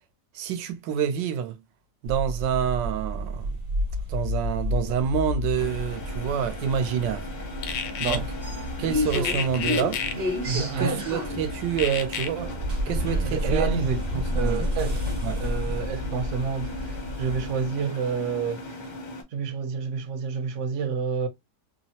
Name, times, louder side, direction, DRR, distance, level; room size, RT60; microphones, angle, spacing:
voice 1, 0.3-1.6 2.0-3.5 4.1-7.3 8.0-8.3 8.8-10.0 10.5-12.6 12.9-13.7 14.1-14.6 15.2-15.4, right 8 dB, 85° right, 1.3 m, -27 dB
sound 1, 2.1-17.7, left 1 dB, 35° right, 0.8 m, -30 dB
sound 2, 5.6-19.2, left 1 dB, 50° left, 0.5 m, -39 dB
sound 3, 7.6-8.2 9.1-10.2 11.8-12.3, left 7 dB, 90° left, 1.3 m, -29 dB
voice 2, 10.4-11.1 13.3-14.0 14.3-15.0 15.4-18.8 19.3-21.3, right 6 dB, 70° right, 0.7 m, -29 dB
3.2 x 2.0 x 2.6 m
omnidirectional pair, 1.9 m